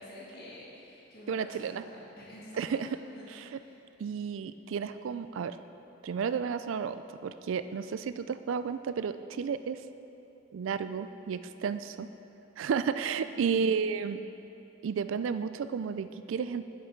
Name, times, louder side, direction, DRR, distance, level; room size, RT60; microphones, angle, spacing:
voice 1, 0.0-2.6 3.1-3.8 13.2-13.7, left 1 dB, 50° left, -7 dB, 1.9 m, -49 dB
voice 2, 1.3-1.8 2.6-3.0 3.3-3.4 4.0-5.6 6.0-9.8 10.5-12.1 12.6-14.2 14.8-16.6, right 6 dB, 65° right, 12 dB, 0.3 m, -32 dB
10.5 x 7.6 x 3.7 m, 2.9 s
head